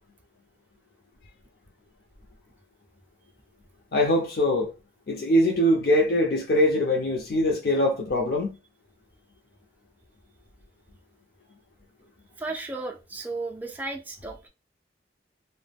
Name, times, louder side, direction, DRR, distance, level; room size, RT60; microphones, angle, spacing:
voice 1, 3.9-4.7 5.1-8.5, left 1 dB, 55° left, 0.5 m, -22 dB
voice 2, 12.4-14.5, right 3 dB, 10° right, 0.3 m, -34 dB
2.2 x 2.1 x 3.3 m
head